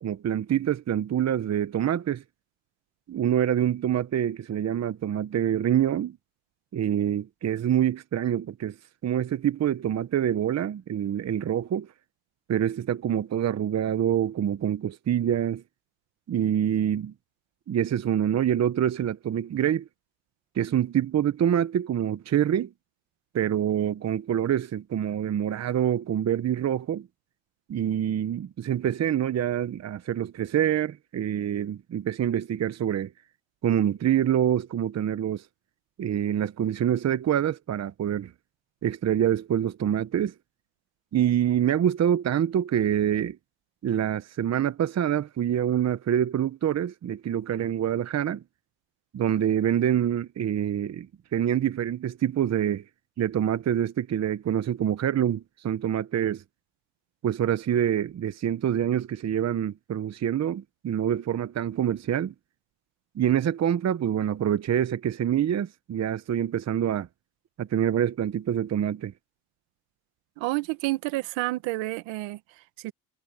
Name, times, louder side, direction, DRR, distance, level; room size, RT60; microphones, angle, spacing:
voice 1, 0.0-2.2 3.1-6.2 6.7-8.7 9.0-11.9 12.5-15.6 16.3-17.1 17.7-19.9 20.5-22.7 23.3-27.1 27.7-33.1 33.6-35.4 36.0-38.3 38.8-40.3 41.1-43.4 43.8-48.4 49.1-52.8 53.2-56.4 57.2-62.3 63.1-67.1 67.6-69.1, right 10 dB, 35° right, 1.0 m, -26 dB
voice 2, 70.4-72.9, right 20 dB, 75° right, 1.7 m, -30 dB
supercardioid pair, 90°, 45 cm